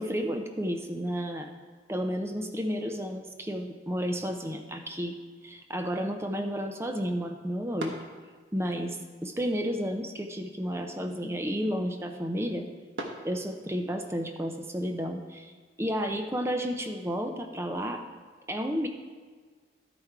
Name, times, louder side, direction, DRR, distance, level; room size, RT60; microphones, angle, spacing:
voice 1, 0.0-1.5 1.9-5.2 5.4-8.0 8.5-12.7 13.2-15.5 15.8-18.0 18.5-18.9, equal, 15° right, 5 dB, 0.5 m, -32 dB
sound 1, 4.0-14.1, right 1 dB, 85° right, 1.1 m, -48 dB
12.5 x 5.1 x 4.6 m, 1.5 s
head